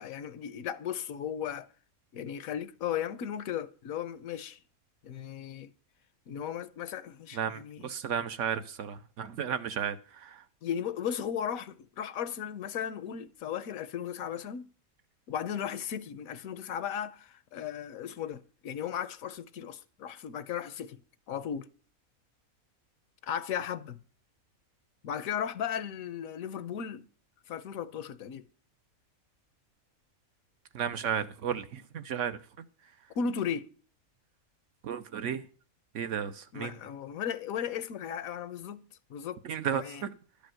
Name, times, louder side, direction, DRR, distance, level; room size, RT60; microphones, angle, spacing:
voice 1, 0.0-1.7 2.1-4.6 5.0-5.7 6.3-7.9 10.6-14.7 15.3-21.0 21.3-21.7 23.2-24.0 25.0-27.1 27.5-28.5 33.1-33.7 36.5-38.8 39.1-39.4 39.7-40.0, left 8 dB, 75° left, 1.1 m, -36 dB
voice 2, 7.3-10.4 30.7-32.4 34.8-35.4 35.9-36.7 39.4-40.1, right 8 dB, 65° right, 0.9 m, -33 dB
12.0 x 5.3 x 7.6 m
omnidirectional pair, 1.5 m